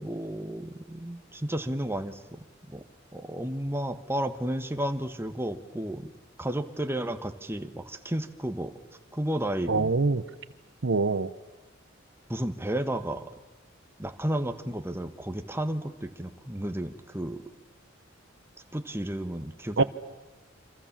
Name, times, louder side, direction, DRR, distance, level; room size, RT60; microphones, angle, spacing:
voice 1, 0.0-2.2 2.7-2.8 3.1-6.1 6.4-8.7 9.1-9.9 12.3-13.3 14.0-17.4 18.7-19.8, right 1 dB, 10° right, 8 dB, 1.3 m, -32 dB
voice 2, 9.7-10.2 10.8-11.3 19.8-19.9, right 3 dB, 65° right, 15 dB, 0.9 m, -24 dB
29.0 x 26.0 x 7.4 m, 1.2 s
head